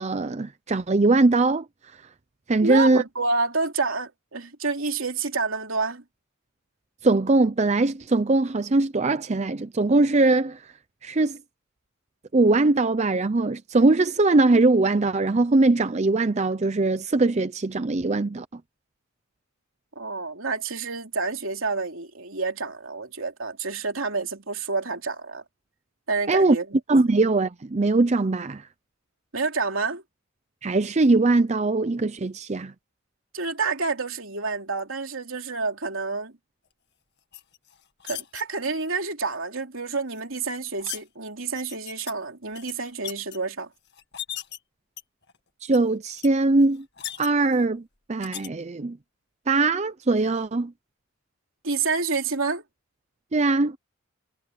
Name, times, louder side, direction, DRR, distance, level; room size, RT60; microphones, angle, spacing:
voice 1, 0.0-1.6 2.5-3.0 7.0-10.7 11.0-11.4 12.3-18.5 26.3-26.6 26.9-28.7 30.6-32.7 45.6-46.8 47.2-47.8 48.1-49.0 49.5-50.7 53.3-53.8, right 2 dB, 30° right, 0.5 m, -21 dB
voice 2, 2.6-6.0 19.9-25.4 26.1-26.7 29.3-30.0 33.3-36.4 38.0-43.7 51.6-52.6, right 4 dB, 70° right, 3.2 m, -28 dB
sound 1, 37.3-38.4 40.1-41.0 41.5-42.1 42.5-43.4 43.9-44.6 45.0-45.4 45.7-45.8 46.1-46.3 46.6-47.6 48.2-48.5, left 11 dB, 55° left, 2.1 m, -37 dB
head